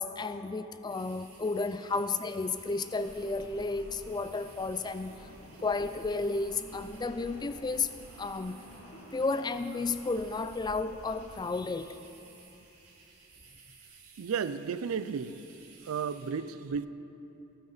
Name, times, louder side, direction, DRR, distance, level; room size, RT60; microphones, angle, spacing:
voice 1, 0.0-5.2 5.6-7.9 8.2-8.6 9.1-12.0, left 3 dB, 20° left, 0.3 m, -32 dB
sound 1, 0.9-16.3, right 5 dB, 90° right, 2.3 m, -57 dB
sound 2, 1.9-10.3, right 1 dB, 75° left, 2.4 m, -53 dB
sound 3, 3.0-11.3, equal, 40° left, 3.0 m, -53 dB
voice 2, 14.2-15.5 15.8-16.9, right 6 dB, 75° right, 0.4 m, -33 dB
18.5 x 8.7 x 3.9 m
head